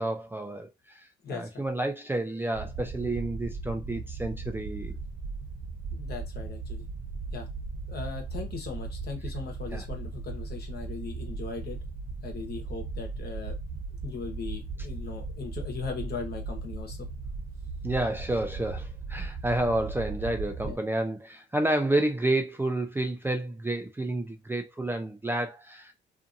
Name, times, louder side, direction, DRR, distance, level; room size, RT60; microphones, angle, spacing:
voice 1, 0.0-5.0 9.7-9.8 17.8-25.9, right 1 dB, 10° right, 0.4 m, -30 dB
voice 2, 1.2-1.7 5.9-6.9 7.3-7.5 7.9-11.8 12.2-13.6 14.0-17.1 20.6-20.8, left 5 dB, 55° left, 1.0 m, -38 dB
sound 1, 2.5-20.8, right 4 dB, 40° right, 0.9 m, -37 dB
2.6 x 2.5 x 2.5 m
cardioid pair, 90°, 20 cm